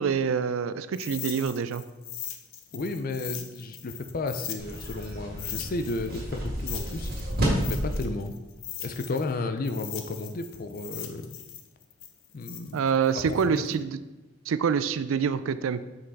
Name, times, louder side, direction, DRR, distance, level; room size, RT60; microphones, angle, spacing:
voice 1, 0.0-1.8 12.7-14.0 14.5-15.8, right 6 dB, 80° right, 14 dB, 0.4 m, -26 dB
sound 1, 0.9-5.1 5.4-9.3 9.6-13.7, left 10 dB, 90° left, 0.7 m, -40 dB
voice 2, 2.7-7.1 7.7-8.3 8.8-11.3 12.3-12.9 13.2-13.8, left 2 dB, 45° left, 8 dB, 0.5 m, -33 dB
sound 2, 4.6-8.0, right 1 dB, 50° right, 2.0 m, -30 dB
5.9 x 5.4 x 4.1 m, 1.1 s
head